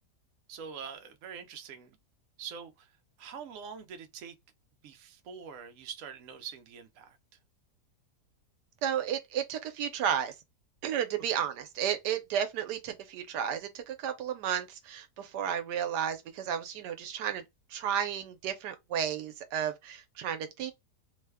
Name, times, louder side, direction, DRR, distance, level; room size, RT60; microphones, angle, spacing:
voice 1, 0.5-2.0 2.4-2.9 3.2-4.4 4.8-7.2 11.3-11.4, right 7 dB, 65° right, 0.9 m, -44 dB
voice 2, 8.8-10.3 10.8-17.4 17.7-20.7, right 9 dB, 85° right, 1.2 m, -33 dB
3.1 x 2.1 x 3.4 m
omnidirectional pair, 1.8 m